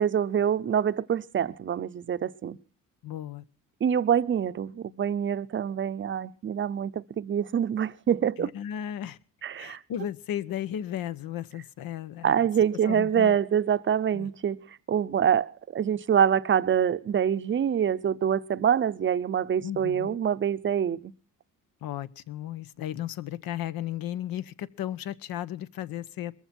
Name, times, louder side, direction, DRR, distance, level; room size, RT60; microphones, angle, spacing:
voice 1, 0.0-2.6 3.8-8.5 9.4-9.8 12.2-14.6 14.9-21.1, right 8 dB, 35° right, 0.7 m, -25 dB
voice 2, 3.0-3.4 8.4-9.2 9.6-12.3 12.8-13.4 14.1-14.3 19.6-20.2 21.8-26.3, left 11 dB, 75° left, 1.1 m, -35 dB
21.5 x 15.0 x 4.4 m
cardioid pair, 130°, 35 cm